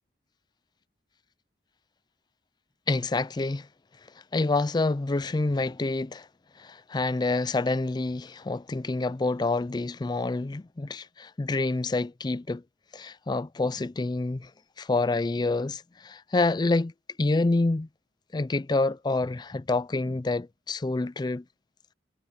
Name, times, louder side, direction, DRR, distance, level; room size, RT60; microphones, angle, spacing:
voice 1, 2.9-3.7 4.3-6.3 6.6-12.6 12.9-14.5 14.8-16.9 17.2-17.9 18.3-21.4, left 3 dB, 25° left, 0.4 m, -27 dB
head